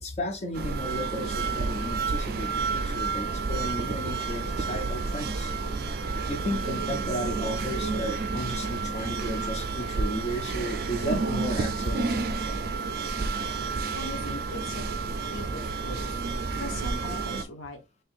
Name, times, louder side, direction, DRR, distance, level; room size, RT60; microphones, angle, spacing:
voice 1, 0.0-5.5 6.3-12.2, equal, 35° left, 0.4 m, -34 dB
sound 1, 0.5-17.4, right 4 dB, 50° right, 0.4 m, -30 dB
voice 2, 13.9-14.9 15.3-16.1 16.5-17.8, left 1 dB, 85° left, 0.7 m, -40 dB
4.3 x 3.3 x 2.4 m
head